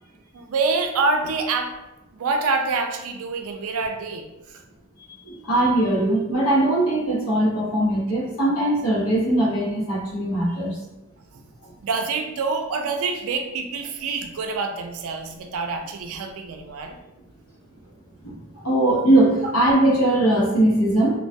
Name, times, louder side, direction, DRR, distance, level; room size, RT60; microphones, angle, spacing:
voice 1, 0.3-1.7 2.1-4.6 11.3-11.4 11.8-17.0, right 4 dB, 75° right, 5 dB, 0.4 m, -26 dB
voice 2, 5.2-10.8 18.2-21.2, right 1 dB, 85° left, -4 dB, 0.8 m, -20 dB
2.2 x 2.2 x 2.6 m, 0.98 s
head